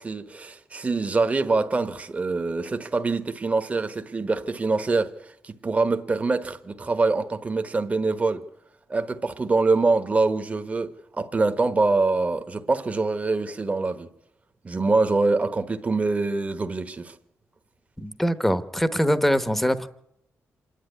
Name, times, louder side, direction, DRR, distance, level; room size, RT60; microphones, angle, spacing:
voice 1, 0.0-8.4 8.9-14.1 14.6-17.2, right 3 dB, 25° right, 1.2 m, -24 dB
voice 2, 18.0-19.9, equal, 5° left, 1.0 m, -23 dB
26.5 x 10.5 x 9.8 m
wide cardioid pair, 135°, 5 cm